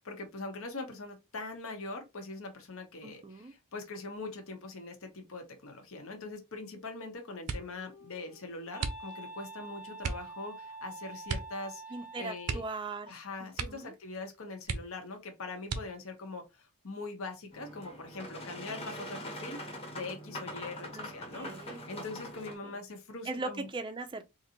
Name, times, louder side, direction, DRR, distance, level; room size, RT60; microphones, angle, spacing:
voice 1, 0.0-11.8 12.1-12.6 13.1-23.7, left 3 dB, 60° left, 0.9 m, -42 dB
voice 2, 3.0-3.5 11.9-13.9 20.9-21.8 22.6-22.8 23.3-24.2, right 3 dB, 20° right, 0.4 m, -40 dB
sound 1, 7.4-7.9 8.8-9.4 10.0-10.3 11.3-11.6 11.9-12.0 12.4-13.2 13.5-14.0 14.3-14.4 14.6-15.2 15.6-16.2 16.9-17.5 17.9-18.3, right 4 dB, 85° right, 0.6 m, -37 dB
Wind instrument woodwind instrument, 7.5-12.8, right 3 dB, 90° left, 1.4 m, -47 dB
Boat Water vehicle, 17.5-22.5, left 1 dB, 25° left, 1.1 m, -43 dB
3.9 x 2.6 x 2.8 m
head